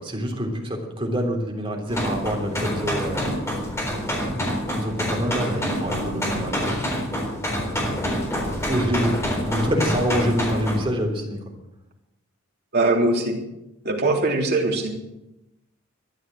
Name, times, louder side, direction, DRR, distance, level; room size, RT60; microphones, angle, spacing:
voice 1, 0.0-3.3 4.6-6.8 8.7-9.1 9.4-11.4, equal, 25° right, 0 dB, 3.5 m, -26 dB
sound 1, 1.9-10.8, equal, 15° left, 4.0 m, -27 dB
voice 2, 12.7-13.4 13.8-14.9, right 2 dB, 55° right, -1 dB, 3.4 m, -21 dB
13.5 x 11.0 x 7.8 m, 0.89 s
head